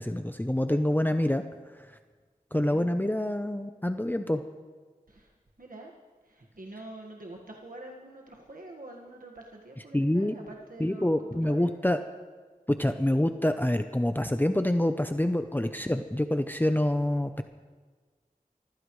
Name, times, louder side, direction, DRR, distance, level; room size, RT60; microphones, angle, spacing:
voice 1, 0.0-1.4 2.5-4.4 9.9-10.4 10.8-12.0 12.7-17.4, left 1 dB, 15° left, 8 dB, 0.7 m, -26 dB
voice 2, 2.5-2.8 5.1-5.3 5.6-5.9 6.2-11.7, right 2 dB, 70° right, -1 dB, 1.7 m, -46 dB
24.0 x 15.5 x 3.2 m, 1.4 s
wide cardioid pair, 45°, 15 cm